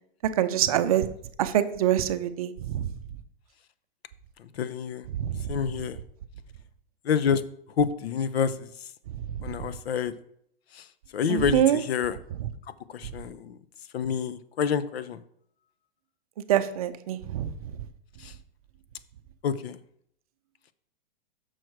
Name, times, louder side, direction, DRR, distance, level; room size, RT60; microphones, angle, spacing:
voice 1, 0.4-1.1 1.4-2.9 5.1-5.4 11.3-11.8 16.5-17.5, right 11 dB, 40° right, 11 dB, 0.5 m, -25 dB
voice 2, 4.4-5.1 5.5-6.0 7.0-7.4 7.8-8.9 9.4-10.1 10.7-10.9 11.1-12.2 12.9-13.6 13.9-15.2 18.2-18.3 19.4-19.8, left 7 dB, 85° left, 14 dB, 0.7 m, -28 dB
6.3 x 6.3 x 4.6 m, 0.69 s
hypercardioid pair, 165°, 30 cm